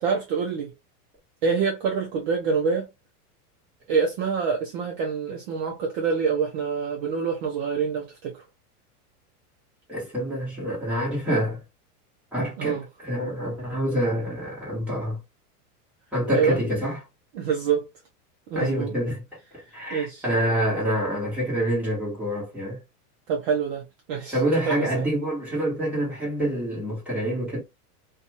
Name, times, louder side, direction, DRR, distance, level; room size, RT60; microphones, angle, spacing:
voice 1, 0.0-0.7 1.4-2.9 3.9-8.4 12.6-12.9 16.3-16.6 17.3-17.9 18.5-18.9 19.9-20.2 23.3-24.4 24.7-25.1, right 6 dB, 35° right, 0.6 m, -26 dB
voice 2, 9.9-11.6 12.3-12.8 13.0-15.2 16.1-16.9 18.5-19.2 19.5-22.8 24.3-27.6, equal, 5° right, 1.2 m, -26 dB
2.5 x 2.4 x 2.8 m
supercardioid pair, 160°, 46 cm